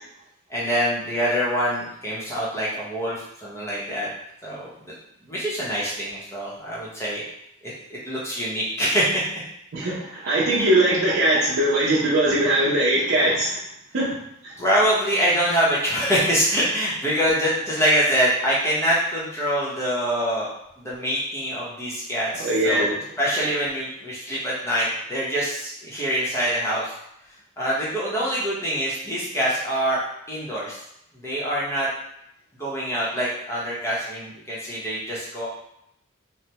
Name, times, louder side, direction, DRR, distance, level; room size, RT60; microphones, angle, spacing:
voice 1, 0.5-4.1 4.4-4.9 5.3-7.2 7.6-9.2 14.6-20.5 20.8-26.9 27.6-30.0 30.3-30.8 31.1-31.9 32.6-35.5, equal, 15° left, -7 dB, 0.7 m, -25 dB
voice 2, 9.7-13.6 13.9-14.2 14.4-14.5 22.4-23.0, right 1 dB, 75° right, -8 dB, 0.6 m, -21 dB
3.2 x 2.1 x 2.8 m, 0.78 s
head